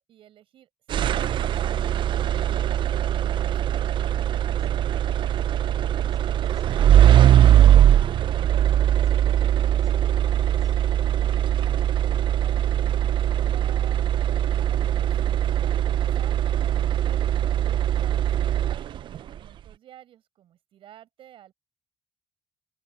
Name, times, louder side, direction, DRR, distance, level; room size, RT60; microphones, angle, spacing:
voice 1, 0.0-3.7 11.4-17.4 18.0-21.5, right 11 dB, 85° right, 5.6 m, -52 dB
sound 1, 0.9-19.2, right 11 dB, 65° right, 0.4 m, -21 dB
voice 2, 4.6-4.7, equal, ahead, 6.8 m, -55 dB
cardioid pair, 110°, 9 cm